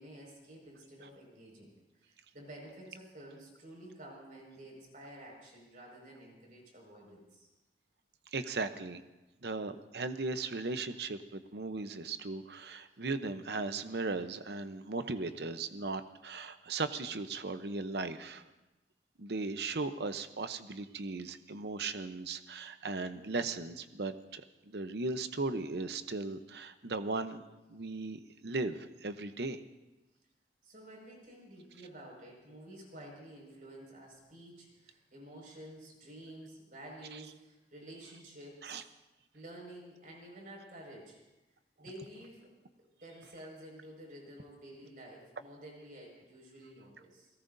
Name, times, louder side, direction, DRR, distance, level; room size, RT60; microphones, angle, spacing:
voice 1, 0.0-7.5 30.6-38.8 39.3-41.2 41.8-42.5 42.8-47.3, right 1 dB, 50° right, -1 dB, 5.5 m, -51 dB
voice 2, 8.3-9.0 9.4-18.4 19.2-27.4 27.7-29.6 37.1-37.2 38.6-38.8, right 3 dB, 65° right, 10 dB, 0.8 m, -37 dB
29.5 x 18.0 x 2.7 m, 1.1 s
head